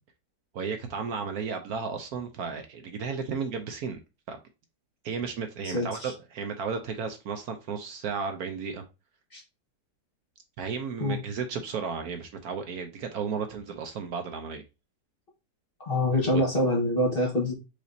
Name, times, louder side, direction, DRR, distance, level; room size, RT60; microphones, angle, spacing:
voice 1, 0.5-4.0 4.3-4.4 5.0-8.8 10.6-14.6 16.3-16.4, right 5 dB, 70° right, 1.1 m, -33 dB
voice 2, 5.6-6.1 9.3-9.4 11.0-11.2 15.8-17.5, left 1 dB, 35° left, 1.6 m, -25 dB
5.0 x 4.0 x 2.6 m
omnidirectional pair, 1.8 m